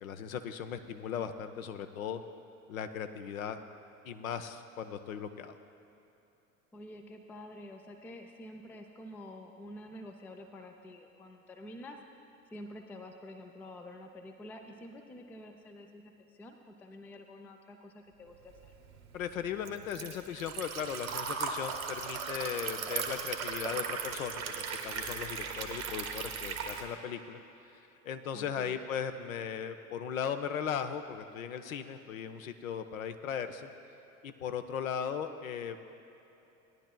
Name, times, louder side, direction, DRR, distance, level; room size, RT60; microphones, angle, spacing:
voice 1, 0.0-2.2 2.7-3.6 4.0-5.5 19.1-27.4 28.0-33.7 34.2-35.8, left 8 dB, 70° left, 9 dB, 0.7 m, -37 dB
voice 2, 6.7-12.0 12.5-18.7 28.3-28.8, left 1 dB, 5° left, 5 dB, 0.3 m, -48 dB
Liquid, 18.6-26.8, right 6 dB, 70° right, 1.1 m, -37 dB
17.5 x 10.5 x 2.2 m, 3.0 s
figure-of-eight pair, 70°, 43 cm